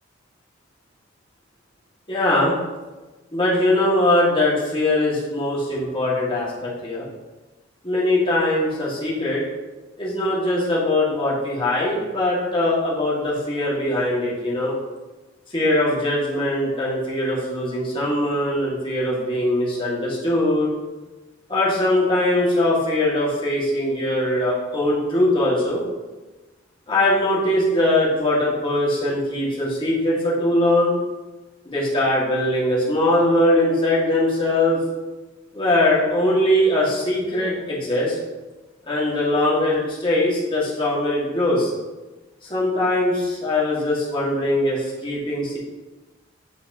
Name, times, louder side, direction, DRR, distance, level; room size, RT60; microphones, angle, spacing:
voice 1, 2.1-2.6 3.3-7.1 7.8-9.4 10.0-14.7 15.5-20.7 21.5-25.8 26.9-31.0 31.6-34.8 35.5-38.2 38.9-41.7 42.5-45.6, left 1 dB, 25° left, -6 dB, 1.7 m, -21 dB
8.5 x 4.0 x 2.7 m, 1.2 s
head